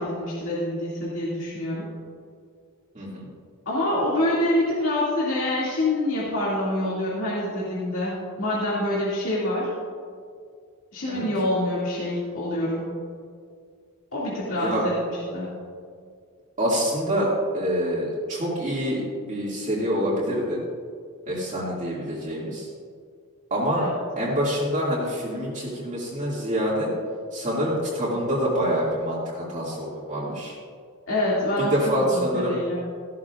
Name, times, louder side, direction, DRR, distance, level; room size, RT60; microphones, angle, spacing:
voice 1, 0.0-1.9 3.7-9.7 10.9-12.9 14.1-15.5 23.7-24.0 31.1-32.8, left 1 dB, 65° left, -7 dB, 2.3 m, -26 dB
voice 2, 2.9-3.3 11.1-11.3 14.6-14.8 16.6-20.6 21.3-22.7 23.5-23.9 24.2-26.9 27.3-30.5 31.7-32.6, equal, 35° right, -7 dB, 2.2 m, -26 dB
15.0 x 12.5 x 2.4 m, 2.2 s
head